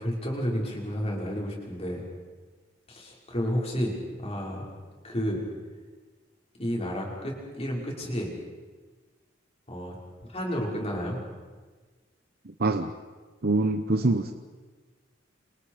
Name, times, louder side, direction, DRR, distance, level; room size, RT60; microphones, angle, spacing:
voice 1, 0.0-2.0 2.9-4.6 5.0-5.4 6.6-8.3 9.7-9.9 10.3-11.2, equal, 30° left, -1 dB, 6.1 m, -31 dB
voice 2, 12.6-12.9 13.4-14.3, right 2 dB, 50° right, 7 dB, 1.0 m, -24 dB
29.0 x 28.5 x 5.2 m, 1.4 s
head